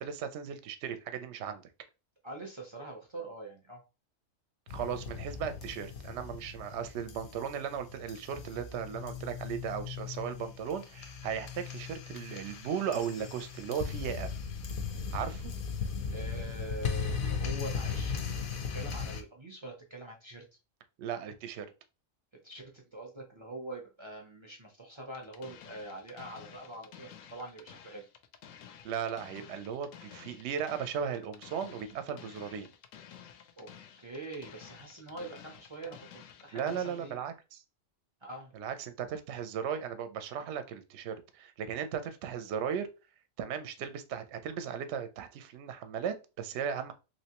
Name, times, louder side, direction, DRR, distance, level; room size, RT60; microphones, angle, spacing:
voice 1, 0.0-1.6 4.7-14.3 15.1-15.5 21.0-21.7 28.8-32.7 36.5-37.6 38.5-42.9 43.4-46.9, right 8 dB, 70° right, 10 dB, 0.8 m, -36 dB
voice 2, 2.2-3.8 16.1-20.4 22.4-28.1 33.6-33.7 34.0-37.2 38.2-38.5, right 2 dB, 35° right, 0 dB, 0.5 m, -44 dB
sound 1, 4.7-19.2, left 6 dB, 55° left, 0.6 m, -38 dB
sound 2, 25.1-37.1, left 8 dB, 90° left, 1.0 m, -52 dB
3.2 x 2.9 x 2.9 m, 0.29 s
omnidirectional pair, 1.3 m